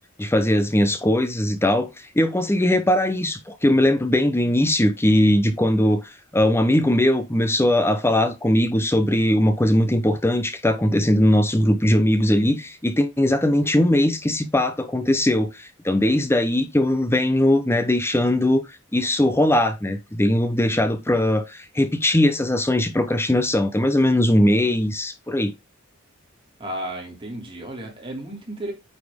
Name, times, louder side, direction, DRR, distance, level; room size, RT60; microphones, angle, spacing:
voice 1, 0.2-18.6 18.9-25.5, left 1 dB, 10° left, 0.8 m, -20 dB
voice 2, 26.6-28.7, right 1 dB, 25° right, 2.8 m, -33 dB
9.5 x 4.3 x 3.6 m
head